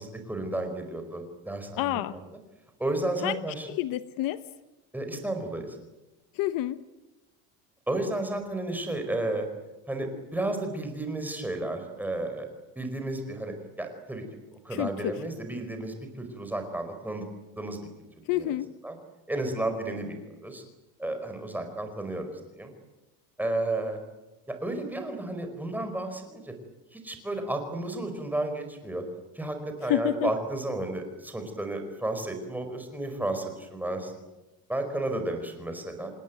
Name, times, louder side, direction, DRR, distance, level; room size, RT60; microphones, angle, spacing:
voice 1, 0.0-2.2 2.8-3.7 4.9-5.8 7.9-9.5 9.9-12.4 12.7-14.2 14.6-17.3 17.6-17.9 18.4-18.5 18.8-19.0 19.3-20.2 20.4-20.6 21.0-22.7 23.4-24.0 24.5-26.5 26.9-29.0 29.3-34.1 34.7-36.1, right 2 dB, 5° right, 5 dB, 4.6 m, -32 dB
voice 2, 1.8-2.2 3.2-3.4 3.7-4.4 6.3-6.8 14.7-15.1 18.3-18.7 29.8-30.3, left 14 dB, 60° left, 13 dB, 1.0 m, -28 dB
27.5 x 19.5 x 9.3 m, 1.0 s
cardioid pair, 165°, 39 cm